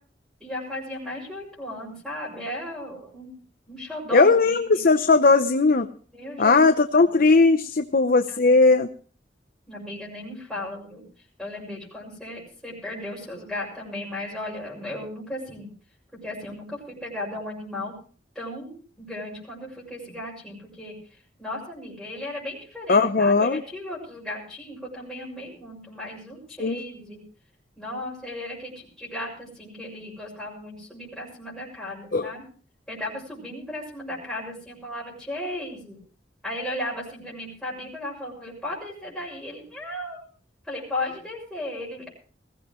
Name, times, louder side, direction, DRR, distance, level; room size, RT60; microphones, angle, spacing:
voice 1, 0.4-3.4 3.7-4.9 6.1-7.2 8.3-8.6 9.7-11.0 11.4-15.7 16.2-17.9 18.3-21.0 21.4-27.2 27.8-32.4 32.9-36.0 36.4-40.2 40.6-42.1, left 1 dB, ahead, -6 dB, 6.6 m, -35 dB
voice 2, 4.1-5.9 6.4-8.9 22.9-23.6 26.6-26.8 32.1-32.3, left 3 dB, 55° left, 7 dB, 0.8 m, -18 dB
21.0 x 15.5 x 3.1 m, 0.41 s
head